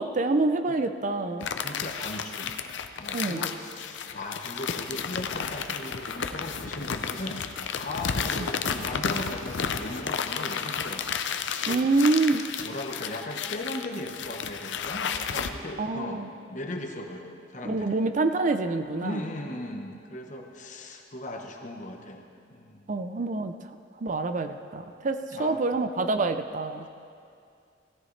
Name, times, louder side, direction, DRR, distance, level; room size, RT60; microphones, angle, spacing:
voice 1, 0.0-1.5 3.1-3.4 8.4-8.5 11.7-12.4 15.8-16.3 17.6-19.2 22.9-23.7 24.0-26.9, right 3 dB, 45° right, 8 dB, 0.5 m, -26 dB
sound 1, 1.4-15.5, left 6 dB, 75° left, 0.6 m, -32 dB
voice 2, 1.6-2.6 3.0-11.2 11.7-12.1 12.6-16.2 16.5-18.0 19.0-22.2 22.5-22.9 25.3-25.6 26.8-26.9, left 1 dB, 45° left, 2 dB, 1.1 m, -38 dB
16.0 x 14.0 x 3.3 m, 2.4 s
head